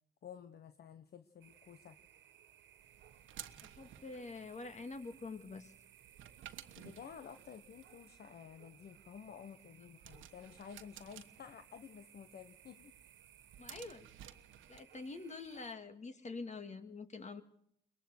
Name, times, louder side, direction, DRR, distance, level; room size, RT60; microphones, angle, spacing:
voice 1, 0.2-2.0 6.8-12.9, left 7 dB, 50° left, 9 dB, 1.1 m, -52 dB
sound 1, 1.4-15.7, right 9 dB, 65° right, 1.7 m, -62 dB
sound 2, 2.8-14.8, right 11 dB, 80° right, 1.3 m, -57 dB
voice 2, 3.7-5.7 13.6-14.1 14.7-17.4, left 3 dB, 35° left, 8 dB, 2.2 m, -46 dB
23.0 x 20.0 x 6.5 m, 0.67 s
cardioid pair, 90°, 20 cm